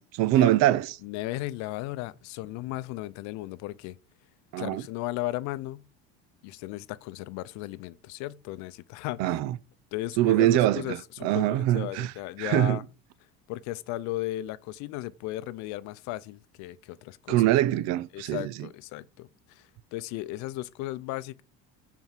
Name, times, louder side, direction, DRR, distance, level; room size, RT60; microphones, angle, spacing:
voice 1, 0.0-0.9 4.5-4.8 9.2-9.6 10.2-11.0 11.2-12.1 12.4-12.8 17.3-18.5, right 14 dB, 65° right, 0.6 m, -23 dB
voice 2, 1.0-4.0 4.6-5.9 6.4-9.4 9.9-12.8 13.5-17.4 18.1-21.4, left 17 dB, 70° left, 0.6 m, -36 dB
9.1 x 4.6 x 7.3 m
cardioid pair, 150°, 29 cm